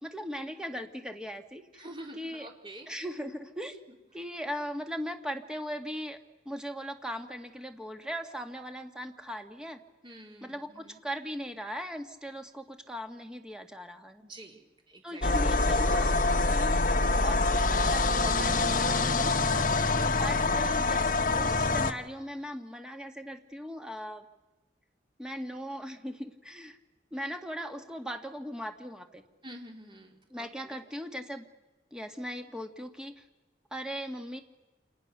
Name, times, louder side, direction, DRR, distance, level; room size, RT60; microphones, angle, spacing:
voice 1, 0.0-1.8 2.2-2.5 2.9-3.8 4.1-6.2 6.5-9.8 10.4-14.2 15.0-16.1 16.4-19.4 20.1-24.2 25.2-26.8 27.1-29.2 30.3-31.4 31.9-33.2 33.7-34.4, equal, 5° right, 5 dB, 1.9 m, -39 dB
voice 2, 1.8-2.9 10.0-11.0 14.2-15.2 19.7-20.0 29.4-30.8, right 1 dB, 25° right, 2 dB, 4.0 m, -48 dB
sound 1, 15.2-21.9, left 3 dB, 45° left, 1.4 m, -25 dB
29.5 x 28.0 x 6.9 m, 1.2 s
head